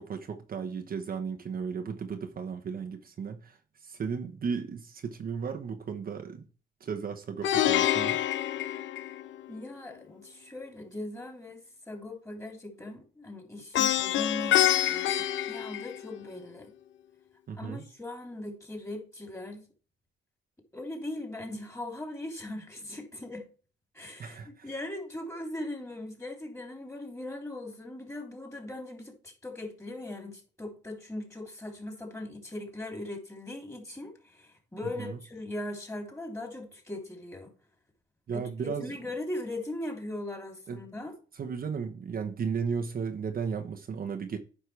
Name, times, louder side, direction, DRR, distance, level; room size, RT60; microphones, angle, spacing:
voice 1, 0.0-6.4 6.8-8.2 17.5-17.8 24.2-24.7 34.8-35.2 38.3-38.9 40.7-40.8 41.3-44.4, right 6 dB, 45° right, 1.0 m, -35 dB
Plucked string instrument, 7.4-9.6 13.7-16.4, left 12 dB, 70° left, 0.6 m, -27 dB
voice 2, 9.5-16.7 17.6-19.6 20.7-23.5 23.9-37.5 38.3-41.1, left 1 dB, 15° left, 3.2 m, -39 dB
9.5 x 5.6 x 3.3 m
cardioid pair, 90°, 20 cm